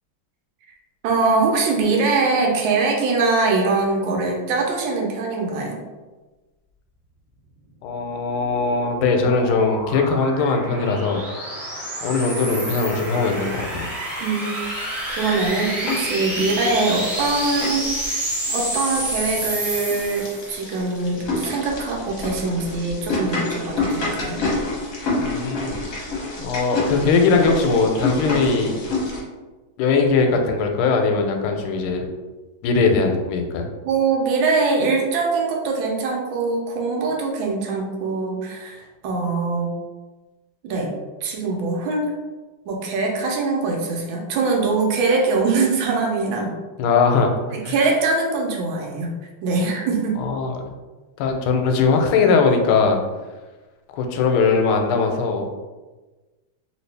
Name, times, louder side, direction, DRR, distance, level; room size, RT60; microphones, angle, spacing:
voice 1, 1.0-5.8 14.2-14.6 15.1-24.4 33.8-39.8 40.6-40.9 41.2-42.1 42.7-46.5 47.5-49.1 49.4-50.2, right 3 dB, 75° right, 0 dB, 1.4 m, -22 dB
voice 2, 7.8-11.2 12.0-13.9 25.2-25.8 26.4-28.8 29.8-32.0 32.6-33.7 46.8-47.4 47.6-47.7 50.2-50.5 51.2-53.0 53.9-55.5, left 4 dB, 90° left, 4 dB, 1.4 m, -20 dB
sound 1, 8.2-20.7, right 1 dB, 40° right, 0.4 m, -29 dB
sound 2, 15.3-16.1 16.4-29.2, left 2 dB, 55° left, 1.0 m, -28 dB
3.1 x 2.9 x 3.3 m, 1.2 s
omnidirectional pair, 2.3 m